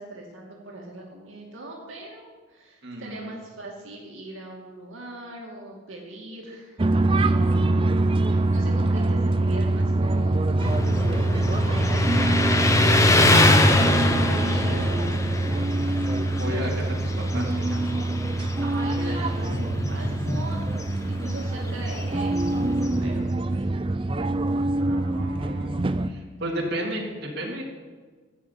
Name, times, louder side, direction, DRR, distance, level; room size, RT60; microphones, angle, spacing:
voice 1, 0.0-8.0 8.3-10.7 11.6-12.2 14.2-15.3 18.6-20.8 21.1-23.7, right 1 dB, 75° right, -2 dB, 2.3 m, -40 dB
voice 2, 2.8-3.3 16.4-17.8 24.8-25.7 26.0-27.6, equal, 55° right, -2 dB, 2.5 m, -34 dB
sound 1, 6.8-26.1, right 2 dB, 25° right, 0.5 m, -24 dB
Motorcycle, 10.6-23.2, left 2 dB, 15° left, 0.8 m, -24 dB
14.0 x 6.4 x 8.3 m, 1.4 s
head